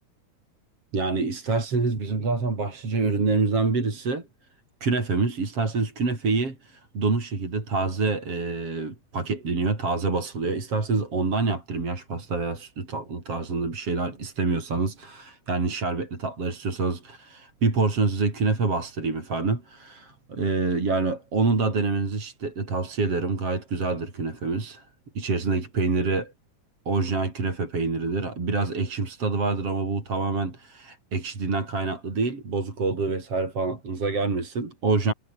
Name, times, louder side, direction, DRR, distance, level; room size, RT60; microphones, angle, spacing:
voice 1, 0.9-4.2 4.8-24.9 25.1-26.3 26.9-35.1, right 3 dB, 35° right, 6.0 m, -26 dB
omnidirectional pair, 4.6 m